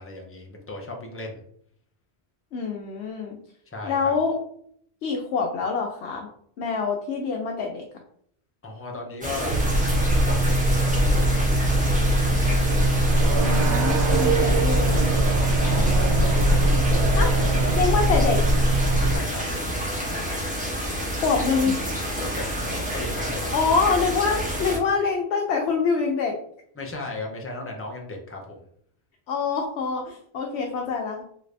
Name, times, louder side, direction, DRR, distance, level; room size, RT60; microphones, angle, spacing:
voice 1, 0.0-1.4 3.7-4.1 8.6-11.6 15.5-18.2 19.1-19.4 22.2-23.7 26.8-28.7, left 2 dB, 15° left, 0 dB, 0.5 m, -36 dB
voice 2, 2.5-3.4 3.8-4.3 5.0-6.3 6.6-7.8 13.3-15.1 17.2-17.3 17.7-18.4 21.1-21.8 23.5-26.3 29.3-31.2, left 5 dB, 80° left, 1 dB, 0.8 m, -25 dB
sound 1, 9.2-24.8, equal, 10° right, 0.8 m, -29 dB
sound 2, 9.5-19.2, right 1 dB, 85° right, 0.9 m, -21 dB
3.1 x 2.5 x 3.2 m, 0.65 s
omnidirectional pair, 1.1 m